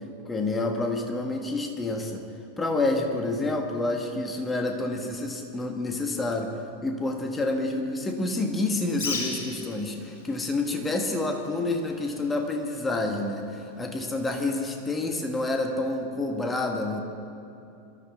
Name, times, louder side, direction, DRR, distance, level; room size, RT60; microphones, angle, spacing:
voice 1, 0.3-2.2 2.6-17.0, left 2 dB, 15° left, 3 dB, 1.6 m, -28 dB
Bird, 8.9-15.5, left 3 dB, 60° left, 4.0 m, -40 dB
23.0 x 14.0 x 3.7 m, 2.7 s
figure-of-eight pair, 90°, 0 cm